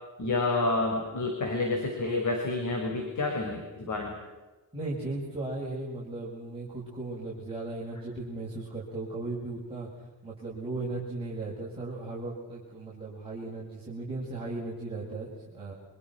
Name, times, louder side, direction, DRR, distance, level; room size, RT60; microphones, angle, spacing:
voice 1, 0.2-4.1, left 2 dB, 55° left, 2 dB, 5.5 m, -29 dB
voice 2, 4.7-9.9 10.2-15.7, right 2 dB, 15° right, -6 dB, 7.6 m, -36 dB
29.5 x 26.5 x 6.0 m, 1.2 s
wide cardioid pair, 135°, 36 cm